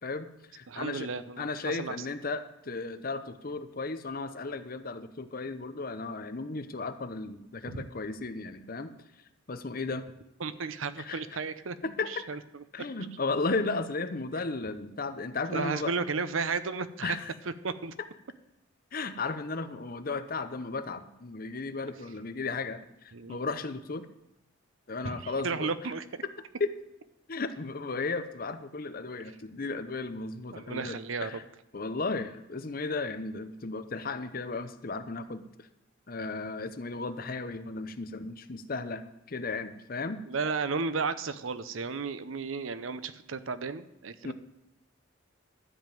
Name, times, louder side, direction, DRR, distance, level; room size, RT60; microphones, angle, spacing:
voice 1, 0.0-1.1 1.4-8.9 9.5-10.1 11.0-11.2 11.8-12.1 12.7-15.9 17.0-17.3 18.9-24.1 24.9-25.7 26.6-26.7 27.3-31.4 31.7-35.7 36.1-40.2 44.2-44.3, left 3 dB, 45° left, 10 dB, 0.8 m, -35 dB
voice 2, 0.7-2.0 7.7-7.9 10.4-11.8 12.1-12.6 15.5-17.2 17.6-17.9 23.1-23.4 25.0-26.2 30.5-31.4 40.3-44.3, right 4 dB, 85° right, 13 dB, 0.7 m, -33 dB
12.5 x 5.3 x 9.0 m, 0.88 s
head